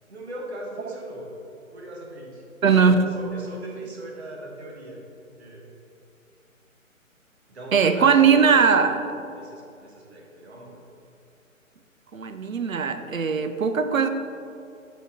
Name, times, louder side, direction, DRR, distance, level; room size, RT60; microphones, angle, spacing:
voice 1, 0.1-1.3 1.7-2.5 2.8-5.0 5.4-5.7 7.5-8.9 9.3-10.8, right 1 dB, 50° right, -2 dB, 1.3 m, -39 dB
voice 2, 2.6-3.1 7.7-9.0 12.1-14.1, right 6 dB, 75° right, 9 dB, 0.6 m, -19 dB
6.9 x 4.3 x 3.7 m, 2.6 s
figure-of-eight pair, 140°, 41 cm